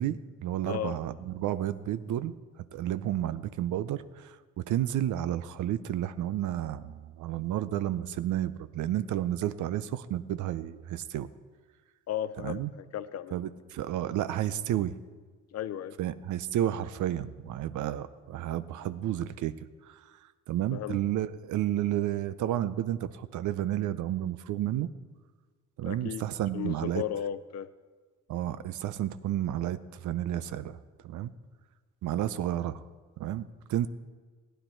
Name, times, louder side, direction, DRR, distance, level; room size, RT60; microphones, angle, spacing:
voice 1, 0.0-2.3 2.7-4.4 4.7-11.3 12.4-12.7 13.3-15.0 16.0-20.0 20.5-24.9 25.8-27.0 28.3-30.8 31.0-31.3 32.0-32.8 33.2-33.9, right 12 dB, 75° right, 15 dB, 0.6 m, -31 dB
voice 2, 0.6-1.0 12.1-13.4 15.5-16.0 20.7-21.0 25.9-26.2 26.5-27.7, left 10 dB, 60° left, 13 dB, 0.6 m, -35 dB
15.5 x 10.0 x 4.4 m, 1.5 s
cardioid pair, 90°, 30 cm